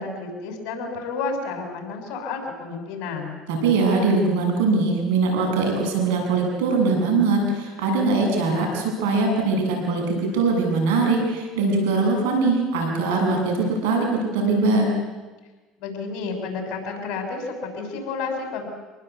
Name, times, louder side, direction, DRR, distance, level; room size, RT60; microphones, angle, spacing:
voice 1, 0.0-3.4 15.8-18.7, left 4 dB, 70° left, 4 dB, 6.3 m, -31 dB
voice 2, 3.5-14.9, right 3 dB, 85° right, 1 dB, 7.7 m, -21 dB
25.5 x 19.5 x 8.3 m, 1.2 s
supercardioid pair, 100°, 0 cm